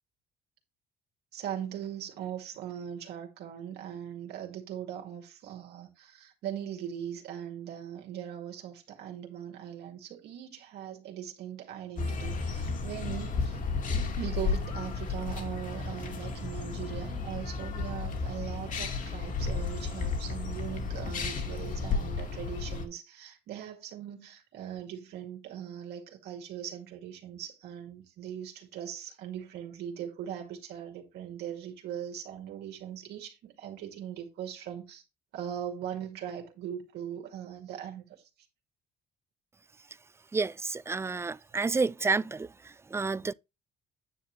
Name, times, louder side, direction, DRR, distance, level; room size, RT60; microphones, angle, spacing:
voice 1, 1.3-13.6 14.2-35.0 35.3-38.3, right 10 dB, 75° right, 2.3 m, -40 dB
sound 1, 12.0-22.9, left 4 dB, 50° left, 2.4 m, -33 dB
voice 2, 40.3-43.3, right 4 dB, 15° right, 0.3 m, -30 dB
9.5 x 7.1 x 3.3 m
cardioid pair, 110°, 17 cm